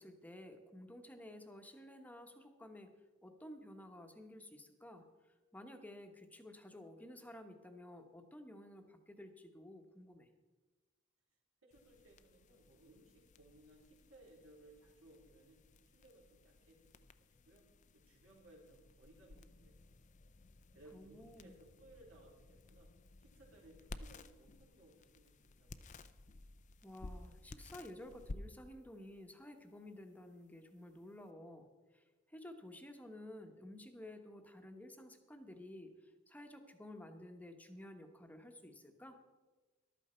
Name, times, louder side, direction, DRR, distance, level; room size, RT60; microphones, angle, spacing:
voice 1, 0.0-2.9 3.2-10.3 20.9-21.6 26.8-39.2, left 1 dB, 10° left, 5 dB, 1.1 m, -53 dB
voice 2, 11.6-15.6 15.9-17.7 17.9-20.2 20.7-22.9 23.2-26.1, right 1 dB, 85° right, -3 dB, 4.0 m, -63 dB
sound 1, 11.7-31.3, left 2 dB, 35° left, 0.5 m, -56 dB
14.0 x 12.0 x 4.4 m, 1.3 s
head